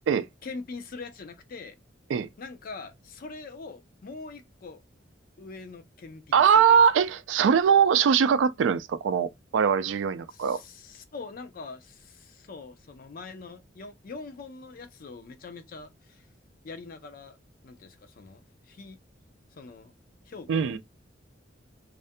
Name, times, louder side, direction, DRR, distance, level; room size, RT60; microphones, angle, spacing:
voice 1, 0.4-1.8 2.4-4.8 5.4-6.8 10.3-16.2 16.6-17.4 17.6-19.0 19.5-19.9 20.3-20.8, left 4 dB, 50° left, 0.4 m, -43 dB
voice 2, 6.3-10.6 20.5-20.8, right 7 dB, 80° right, 0.3 m, -21 dB
2.4 x 2.1 x 2.6 m
head